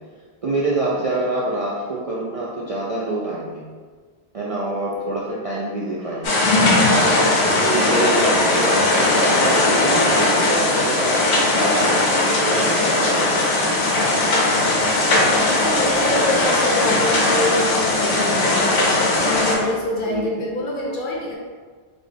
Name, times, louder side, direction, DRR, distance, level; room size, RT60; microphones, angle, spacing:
voice 1, 0.4-3.6 4.3-7.0 7.6-13.5 19.5-19.7 20.0-20.3, right 2 dB, 50° right, -6 dB, 0.4 m, -26 dB
sound 1, 6.2-19.6, left 2 dB, 85° left, 1.0 m, -18 dB
voice 2, 9.0-10.2 15.1-21.3, left 1 dB, 55° left, -2 dB, 0.8 m, -27 dB
3.9 x 2.4 x 3.3 m, 1.5 s
omnidirectional pair, 1.1 m